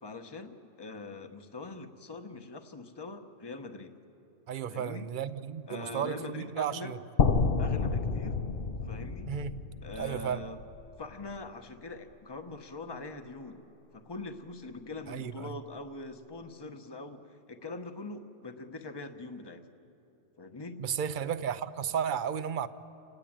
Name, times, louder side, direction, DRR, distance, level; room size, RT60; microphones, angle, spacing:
voice 1, 0.0-3.9 4.7-5.1 5.7-6.9 7.6-8.4 8.8-9.3 9.8-10.6 11.0-13.6 13.9-19.6 20.4-20.8, left 2 dB, 25° left, 1.1 m, -42 dB
voice 2, 4.5-7.0 9.3-9.6 10.0-10.4 15.1-15.5 20.8-22.7, right 8 dB, 55° right, 0.9 m, -33 dB
sound 1, 7.2-11.2, left 4 dB, 55° left, 1.1 m, -30 dB
30.0 x 19.0 x 8.9 m
omnidirectional pair, 1.1 m